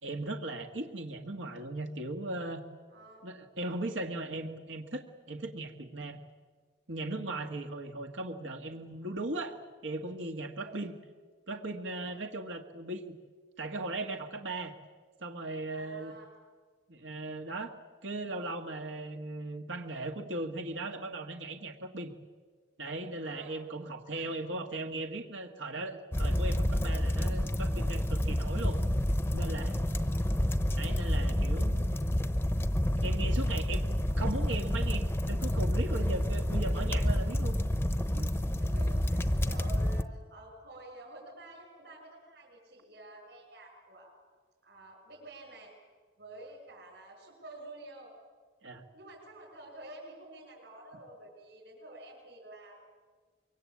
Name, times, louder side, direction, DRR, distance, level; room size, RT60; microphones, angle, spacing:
voice 1, 0.0-2.6 3.2-6.2 6.9-10.9 11.5-13.1 13.6-14.7 15.2-16.1 16.9-17.7 18.0-22.1 22.8-28.8 29.3-29.8 30.8-32.0 33.0-33.8 34.2-37.6 38.1-38.3 48.6-48.8, right 2 dB, 80° right, 4 dB, 1.7 m, -38 dB
voice 2, 2.9-3.3 7.2-7.4 10.6-10.7 12.0-12.2 15.7-16.3 23.2-23.5 24.1-24.3 29.7-30.3 36.0-36.1 38.6-44.1 44.6-45.7 46.2-48.2 48.9-52.8, right 1 dB, 60° right, -4 dB, 6.6 m, -50 dB
sound 1, 26.1-40.0, left 1 dB, 10° left, 0.8 m, -29 dB
25.5 x 23.5 x 8.5 m, 1.5 s
head